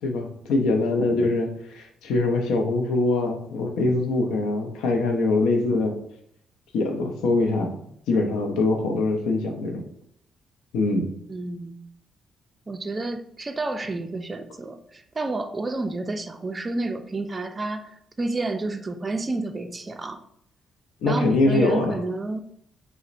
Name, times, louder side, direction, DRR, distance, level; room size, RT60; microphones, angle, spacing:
voice 1, 0.0-6.0 6.7-7.8 8.1-9.8 10.7-11.1 21.0-21.9, left 2 dB, 90° left, 3 dB, 0.5 m, -23 dB
voice 2, 11.3-11.8 12.7-20.2 21.1-22.4, right 2 dB, 30° right, 8 dB, 0.3 m, -30 dB
3.9 x 2.0 x 2.5 m, 0.69 s
cardioid pair, 90°, 0 cm